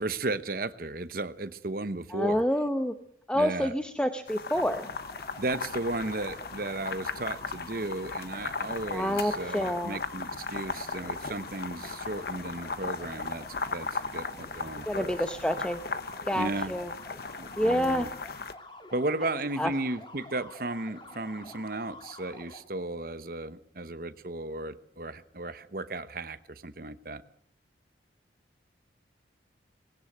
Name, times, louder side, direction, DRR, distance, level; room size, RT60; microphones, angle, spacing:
voice 1, 0.0-2.4 3.3-3.7 5.4-15.1 16.3-16.7 17.4-18.1 18.9-27.2, right 2 dB, 50° right, 13 dB, 1.0 m, -35 dB
voice 2, 2.1-2.9 3.3-4.9 8.9-10.0 14.9-15.8 16.3-16.9 17.6-18.1 19.6-19.7, equal, 5° left, 7 dB, 0.8 m, -28 dB
sound 1, 4.3-18.5, left 4 dB, 55° left, 1.0 m, -37 dB
sound 2, 4.5-22.6, left 2 dB, 25° left, 2.2 m, -48 dB
20.5 x 17.0 x 8.0 m, 0.65 s
head